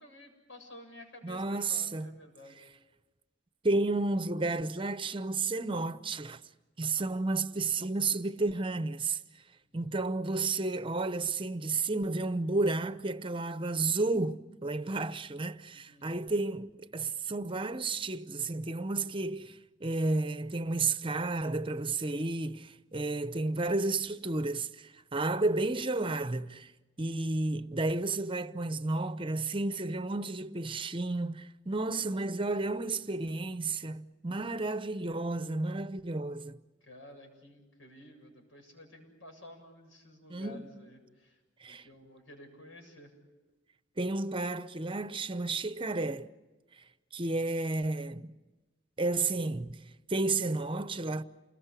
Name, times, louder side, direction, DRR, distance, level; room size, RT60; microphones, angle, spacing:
voice 1, 0.0-2.7 9.6-9.9 15.7-16.4 36.8-41.4 41.7-43.1, left 1 dB, 80° left, 7.8 m, -52 dB
voice 2, 1.2-2.1 3.6-6.4 6.8-9.2 9.7-26.7 27.0-36.6 40.3-40.7 41.6-41.8 44.0-46.3 47.1-48.3 49.0-49.8 50.1-51.2, right 3 dB, 25° right, 0.9 m, -32 dB
29.0 x 21.0 x 8.4 m
head